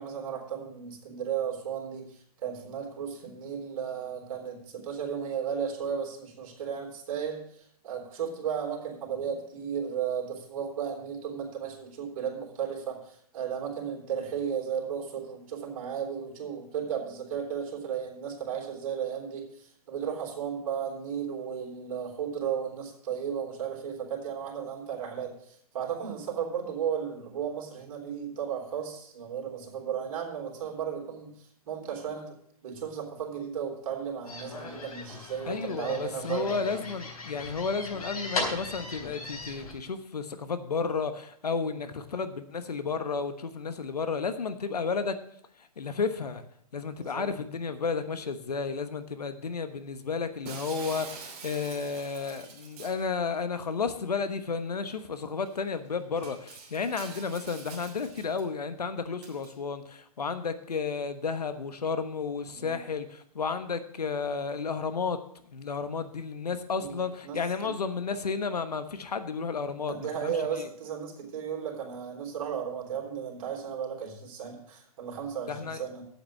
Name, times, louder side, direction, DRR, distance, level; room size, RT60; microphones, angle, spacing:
voice 1, 0.0-32.4 32.6-36.8 41.6-41.8 47.0-47.3 62.5-62.8 66.8-67.7 69.9-76.0, right 8 dB, 60° right, 0 dB, 3.7 m, -35 dB
sound 1, 34.3-39.7, left 3 dB, 70° left, 4.2 m, -38 dB
voice 2, 35.5-45.2 45.8-46.4 46.7-65.2 65.5-70.7 75.5-75.8, left 5 dB, 90° left, 10 dB, 1.2 m, -32 dB
Shatter, 50.4-53.1 54.9-55.0 55.4-55.6 56.2-58.4 59.2-59.5, right 5 dB, 35° right, 2.9 m, -45 dB
8.5 x 7.7 x 7.4 m, 0.67 s
hypercardioid pair, 125°, 20 cm